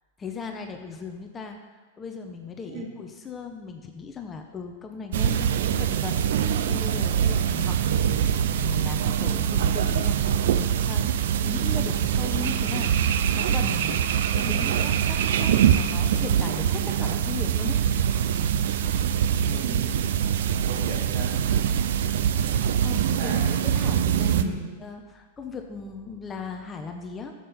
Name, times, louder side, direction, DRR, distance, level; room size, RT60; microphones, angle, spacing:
voice 1, 0.2-14.0 14.3-17.8 22.8-24.5 24.8-27.3, left 5 dB, 20° left, 4 dB, 1.0 m, -38 dB
sound 1, 5.1-24.4, right 9 dB, 70° right, 0.6 m, -24 dB
voice 2, 19.4-20.1 20.7-21.3 23.1-23.4 24.4-24.6, right 3 dB, 50° right, -1 dB, 2.6 m, -35 dB
12.0 x 7.9 x 4.3 m, 1.4 s
hypercardioid pair, 120°, 0 cm